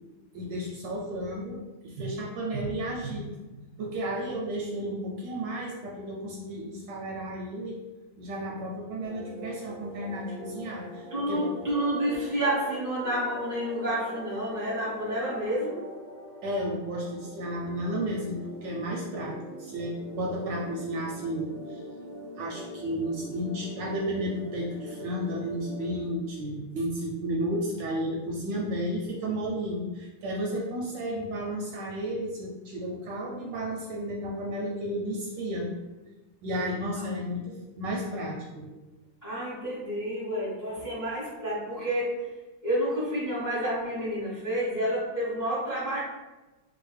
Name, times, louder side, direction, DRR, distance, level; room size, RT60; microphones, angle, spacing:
voice 1, 0.3-7.7 8.2-11.4 16.4-21.8 22.4-35.7 36.4-38.7, equal, 75° right, -2 dB, 1.0 m, -33 dB
sound 1, 9.0-26.1, equal, 55° left, 1.2 m, -42 dB
voice 2, 11.1-15.9 39.2-42.3 42.6-46.0, equal, 25° left, -7 dB, 0.4 m, -29 dB
3.2 x 2.4 x 3.2 m, 1.1 s
omnidirectional pair, 2.2 m